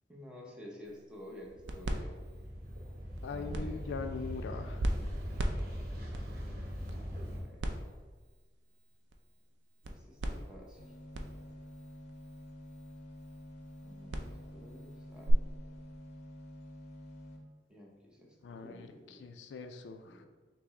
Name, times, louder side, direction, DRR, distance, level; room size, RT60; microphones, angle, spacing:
voice 1, 0.1-2.2 3.3-3.8 6.9-7.6 9.9-10.9 13.8-15.4 17.7-19.3 20.0-20.3, equal, 5° right, -2 dB, 0.7 m, -51 dB
sound 1, 0.8-15.3, right 1 dB, 85° right, 0.4 m, -41 dB
sound 2, 1.4-7.4, equal, 55° right, 0.9 m, -41 dB
voice 2, 3.2-4.9 18.4-20.2, left 4 dB, 80° left, 7 dB, 0.3 m, -42 dB
sound 3, 10.8-17.4, left 1 dB, 40° left, 0.6 m, -49 dB
5.8 x 2.0 x 3.6 m, 1.4 s
head